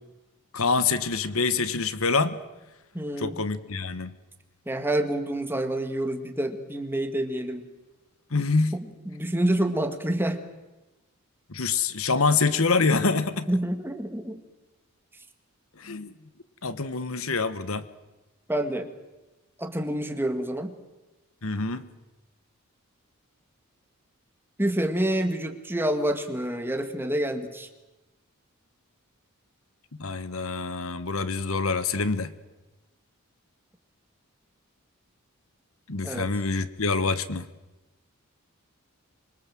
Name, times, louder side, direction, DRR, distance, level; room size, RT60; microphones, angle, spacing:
voice 1, 0.5-2.4 3.2-4.1 8.3-8.8 11.5-13.5 15.8-16.1 16.6-17.9 21.4-21.9 30.0-32.3 35.9-37.5, left 4 dB, 65° left, 13 dB, 1.3 m, -26 dB
voice 2, 2.9-3.4 4.7-7.7 8.7-10.4 13.5-14.4 18.5-18.9 19.6-20.8 24.6-27.7 36.0-36.3, right 1 dB, 10° right, 7 dB, 1.9 m, -28 dB
26.0 x 23.5 x 7.7 m, 1.1 s
head